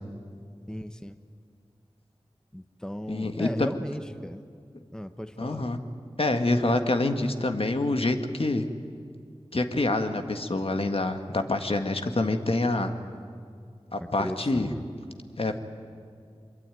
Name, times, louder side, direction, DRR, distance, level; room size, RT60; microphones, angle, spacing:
voice 1, 0.7-1.2 2.5-4.4 4.9-5.7 14.0-14.8, equal, 5° left, 10 dB, 1.0 m, -37 dB
voice 2, 3.1-3.7 5.4-5.8 6.2-8.6 9.5-12.9 13.9-14.7 15.4-15.6, left 2 dB, 60° left, 6 dB, 1.7 m, -26 dB
24.0 x 22.5 x 9.2 m, 2.2 s
wide cardioid pair, 45°, 11 cm